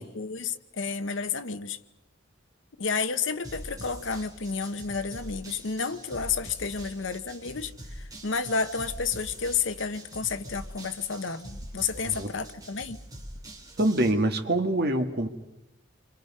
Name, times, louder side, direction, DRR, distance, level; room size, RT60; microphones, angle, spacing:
voice 1, 0.0-1.8 2.8-13.0, left 5 dB, 70° left, 10 dB, 0.9 m, -31 dB
sound 1, 3.4-14.1, right 1 dB, 20° right, 3.4 m, -44 dB
voice 2, 13.8-15.3, right 1 dB, 50° right, 5 dB, 1.7 m, -25 dB
29.0 x 24.5 x 5.5 m, 0.93 s
head